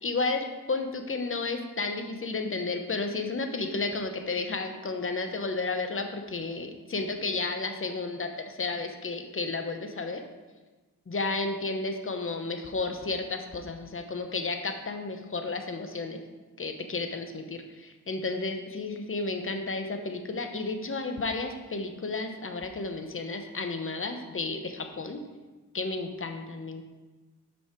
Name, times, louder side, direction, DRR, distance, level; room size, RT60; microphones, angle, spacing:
voice 1, 0.0-10.2 11.1-16.2 16.6-25.2 25.7-26.8, left 3 dB, 35° left, 6 dB, 0.8 m, -32 dB
5.6 x 5.5 x 4.5 m, 1.2 s
cardioid pair, 65°, 35 cm